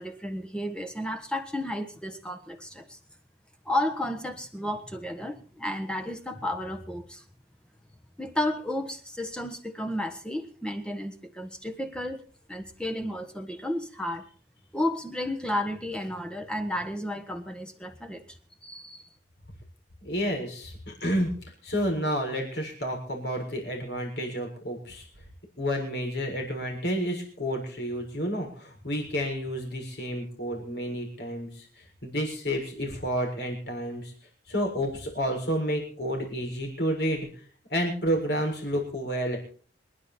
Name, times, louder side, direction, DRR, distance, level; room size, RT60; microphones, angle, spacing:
voice 1, 0.0-3.0 3.6-7.2 8.2-14.2 14.7-19.1, left 1 dB, 5° left, 6 dB, 1.4 m, -32 dB
voice 2, 20.0-21.3 21.6-25.0 25.6-31.7 32.0-34.1 34.5-37.3 37.7-39.4, equal, 60° left, 2 dB, 7.0 m, -30 dB
26.5 x 11.0 x 4.4 m, 0.44 s
head